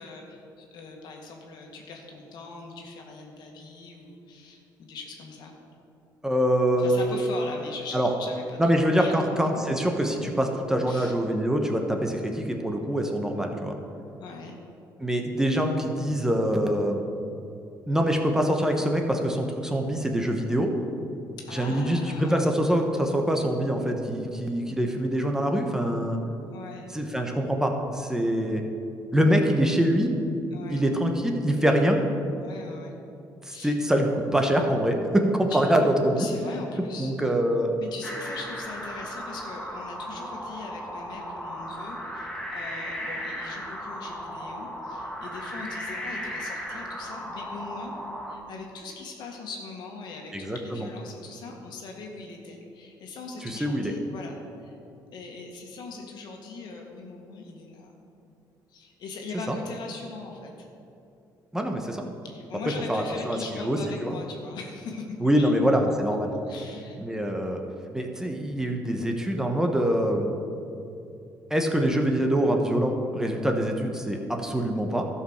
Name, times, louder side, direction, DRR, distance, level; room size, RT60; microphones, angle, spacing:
voice 1, 0.0-5.5 6.8-8.7 9.0-9.6 10.9-11.1 14.2-14.6 21.4-22.4 26.5-26.9 30.5-30.9 32.4-32.9 33.5-33.8 35.5-35.6 36.2-37.1 37.8-47.9 48.3-54.4 54.6-54.7 55.1-57.9 58.2-58.4 58.7-60.7 62.2-65.5 66.5-67.0, left 4 dB, 70° left, 1 dB, 1.8 m, -41 dB
voice 2, 6.2-7.2 7.9-8.1 8.6-13.8 15.0-17.0 17.9-20.7 21.5-26.2 26.9-28.6 29.1-30.2 30.7-32.0 33.4-36.3 37.0-37.7 50.3-50.9 53.4-53.9 59.5-59.6 61.5-62.0 62.9-64.2 65.2-66.3 67.0-67.6 67.9-70.3 71.5-75.1, equal, 5° right, 2 dB, 1.1 m, -24 dB
sound 1, 38.0-48.3, equal, 10° left, 1.6 m, -36 dB
13.0 x 5.5 x 6.5 m, 2.6 s
cardioid pair, 95°, 8 cm